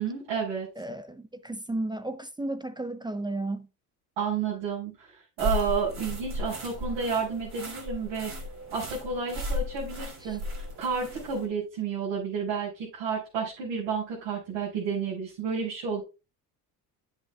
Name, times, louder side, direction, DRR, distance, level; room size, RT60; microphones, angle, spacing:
voice 1, 0.0-0.7 4.2-8.3 8.7-16.0, right 6 dB, 75° right, 5.5 m, -31 dB
voice 2, 0.8-3.7 10.3-10.4, right 2 dB, 10° right, 0.5 m, -34 dB
sound 1, 5.4-11.5, left 1 dB, 35° right, 3.3 m, -35 dB
9.9 x 8.2 x 2.3 m
supercardioid pair, 80°, 46 cm